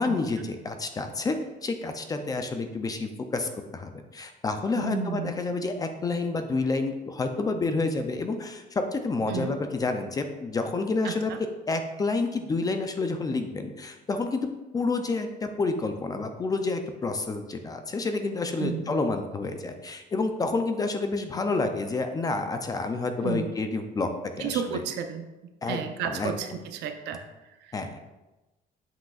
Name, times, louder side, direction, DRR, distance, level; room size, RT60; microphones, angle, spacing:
voice 1, 0.0-1.4 1.6-14.5 14.7-24.1 24.4-24.8 25.6-26.3 27.7-28.0, left 3 dB, 20° left, 6 dB, 0.4 m, -29 dB
voice 2, 4.8-5.3 9.3-9.5 11.0-11.1 18.6-18.9 23.2-23.5 24.4-25.2 25.7-27.2, right 7 dB, 80° right, 7 dB, 0.7 m, -32 dB
7.6 x 6.0 x 2.4 m, 1.1 s
cardioid pair, 155°, 17 cm